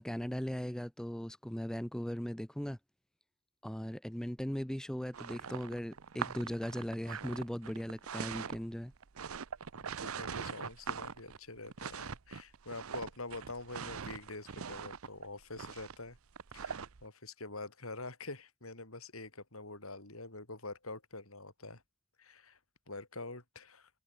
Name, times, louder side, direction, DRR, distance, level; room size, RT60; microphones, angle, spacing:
voice 1, 0.0-2.8 3.6-8.9, equal, 5° left, 0.6 m, -38 dB
sound 1, 5.1-17.0, right 6 dB, 75° right, 0.8 m, -42 dB
voice 2, 9.7-16.2 16.5-21.8 22.2-22.6 22.9-23.9, left 2 dB, 75° left, 6.4 m, -46 dB
head